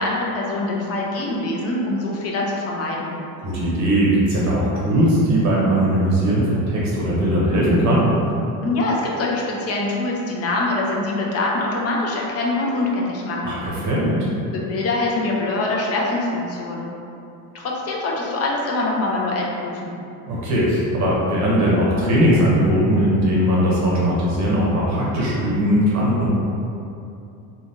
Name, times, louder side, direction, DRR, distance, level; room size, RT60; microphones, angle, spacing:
voice 1, 0.0-3.1 8.6-13.6 14.5-16.9 17.5-19.9, left 2 dB, 35° left, -2 dB, 0.6 m, -24 dB
voice 2, 3.4-8.1 13.4-14.2 20.3-26.3, equal, 45° right, -6 dB, 0.8 m, -19 dB
3.3 x 2.3 x 2.6 m, 2.7 s
supercardioid pair, 120°, 40 cm